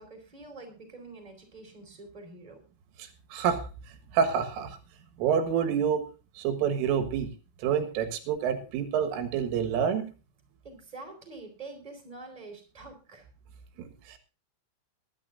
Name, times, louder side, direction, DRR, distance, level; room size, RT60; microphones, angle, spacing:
voice 1, 0.0-2.6 10.6-13.3, right 3 dB, 10° right, 4 dB, 3.7 m, -46 dB
voice 2, 3.0-4.8 5.2-6.0 6.4-7.3 7.6-10.1 13.8-14.2, right 7 dB, 85° right, 6 dB, 4.1 m, -28 dB
21.5 x 12.0 x 2.6 m, 0.34 s
omnidirectional pair, 5.7 m